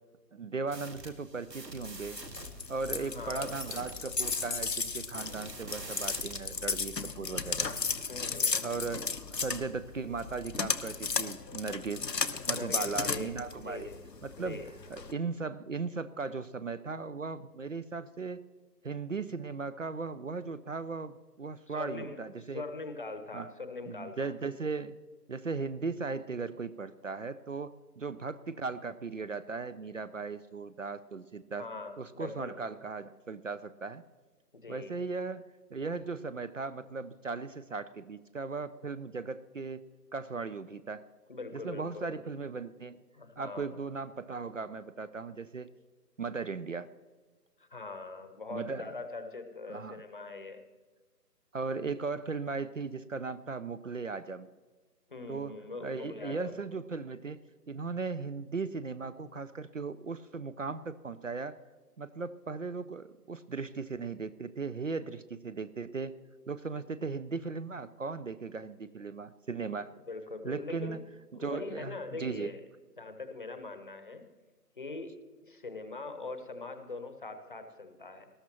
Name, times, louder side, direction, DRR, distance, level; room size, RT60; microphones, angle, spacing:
voice 1, 0.3-2.2 2.7-7.7 8.6-12.1 12.5-13.9 14.2-14.6 14.9-18.4 18.8-22.6 23.3-23.5 23.9-25.0 25.3-31.7 32.0-34.0 34.7-35.4 35.7-39.8 40.1-41.0 41.5-43.0 43.4-45.7 46.2-46.9 48.5-48.9 49.7-50.0 51.5-54.5 55.3-55.5 55.8-57.4 57.7-61.6 62.0-66.1 66.5-69.9 70.4-71.0 71.3-72.5, right 4 dB, 50° right, 15 dB, 0.6 m, -37 dB
sound 1, 0.7-6.4, right 2 dB, 85° right, 1.8 m, -46 dB
sound 2, 1.7-15.1, left 5 dB, 85° left, 1.0 m, -35 dB
voice 2, 3.0-3.6 8.1-8.6 12.5-13.4 13.6-14.0 14.4-14.7 21.7-22.2 22.5-24.3 31.6-32.6 34.5-35.0 41.3-42.2 43.1-43.8 47.6-50.6 55.1-56.6 70.1-71.0 71.3-72.6 73.0-74.3 74.8-78.3, left 3 dB, 30° left, 8 dB, 0.9 m, -42 dB
19.5 x 12.5 x 2.9 m, 1.3 s
figure-of-eight pair, 150°, 49 cm